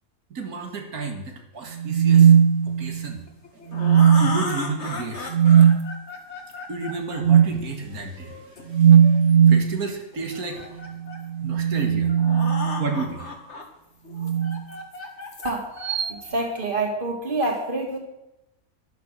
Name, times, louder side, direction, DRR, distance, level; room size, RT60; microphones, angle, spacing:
voice 1, 0.3-2.3 2.6-3.2 3.5-5.4 6.7-9.2 9.5-10.9 11.4-12.2 12.8-13.4, right 3 dB, 90° right, 3 dB, 2.3 m, -32 dB
larsen low + hi freq, 1.8-3.1 3.7-4.5 5.3-5.8 7.2-7.6 8.7-9.7 11.2-13.1 14.2-14.6 15.8-16.1, right 8 dB, 65° right, 0.9 m, -17 dB
sound 1, 3.3-9.2 10.1-11.3 11.8-11.9 12.1-13.6 14.0-16.8, left 3 dB, 50° left, 2.2 m, -36 dB
voice 2, 16.2-18.0, right 2 dB, 35° right, 2 dB, 2.8 m, -26 dB
12.0 x 11.0 x 6.7 m, 0.89 s
omnidirectional pair, 1.5 m